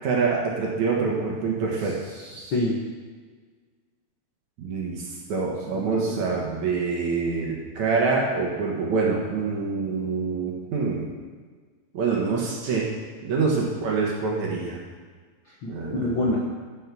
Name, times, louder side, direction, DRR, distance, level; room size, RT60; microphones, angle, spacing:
voice 1, 0.0-2.0 4.6-5.0 5.3-11.1 11.9-12.9 13.2-14.8 15.7-16.3, right 4 dB, 60° right, -2 dB, 2.4 m, -26 dB
voice 2, 2.1-2.8 5.7-6.2 15.6-15.7 16.0-16.5, left 2 dB, 75° left, -3 dB, 1.1 m, -27 dB
13.0 x 5.6 x 6.1 m, 1.5 s
omnidirectional pair, 4.5 m